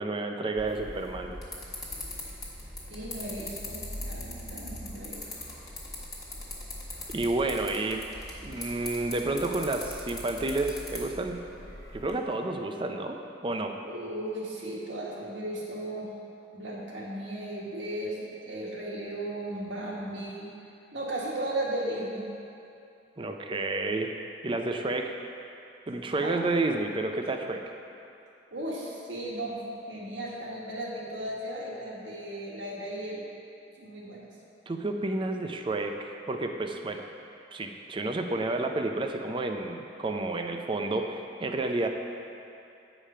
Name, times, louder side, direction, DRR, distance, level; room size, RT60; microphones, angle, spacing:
voice 1, 0.0-1.4 7.1-8.0 8.4-11.4 11.9-13.2 13.4-13.7 23.2-24.2 24.4-25.1 25.9-27.6 34.7-37.0 37.5-41.9, right 2 dB, 25° right, 4 dB, 0.5 m, -30 dB
sound 1, 0.6-12.1, left 2 dB, 20° left, 1.4 m, -41 dB
voice 2, 2.9-5.2 13.8-16.1 16.5-20.5 20.9-22.2 26.1-26.4 28.5-29.6 29.9-33.2 33.8-34.3, right 1 dB, 70° right, -4 dB, 1.6 m, -36 dB
8.9 x 5.0 x 5.5 m, 2.7 s
head